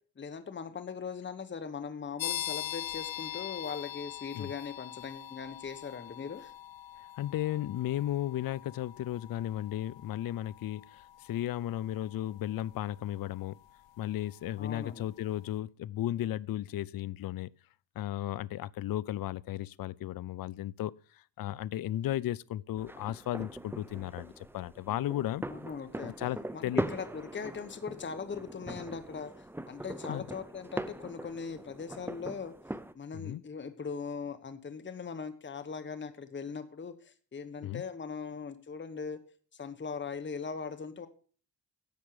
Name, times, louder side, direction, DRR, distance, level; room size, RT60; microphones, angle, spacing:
voice 1, 0.2-6.5 14.6-15.1 25.5-26.1 26.5-32.5 32.9-39.2 39.5-41.1, left 5 dB, 25° left, 1.1 m, -40 dB
sound 1, 2.2-14.7, left 12 dB, 85° left, 0.9 m, -43 dB
voice 2, 7.0-13.6 14.0-17.5 18.0-25.4 26.0-26.9 30.1-30.2 33.1-33.4 37.6-37.8, left 13 dB, 55° left, 0.5 m, -35 dB
sound 2, 22.8-32.9, right 1 dB, 5° right, 0.6 m, -41 dB
11.0 x 7.3 x 6.6 m
cardioid pair, 120°, 44 cm